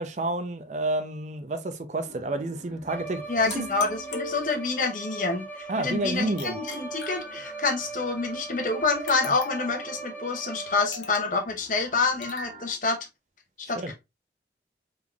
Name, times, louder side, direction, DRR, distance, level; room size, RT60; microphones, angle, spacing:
voice 1, 0.0-3.6 5.7-6.6 13.8-13.9, right 2 dB, 40° right, 0.4 m, -30 dB
sound 1, 2.1-12.7, right 2 dB, 20° right, 1.1 m, -49 dB
Bowed string instrument, 2.9-11.1, right 3 dB, 10° left, 0.5 m, -39 dB
voice 2, 3.3-13.0 13.7-13.9, left 4 dB, 45° left, 0.8 m, -27 dB
sound 2, 3.5-4.9 6.4-7.8 9.1-9.8 10.9-11.4 12.2-12.6, left 3 dB, 80° left, 0.8 m, -40 dB
3.6 x 3.4 x 2.3 m
head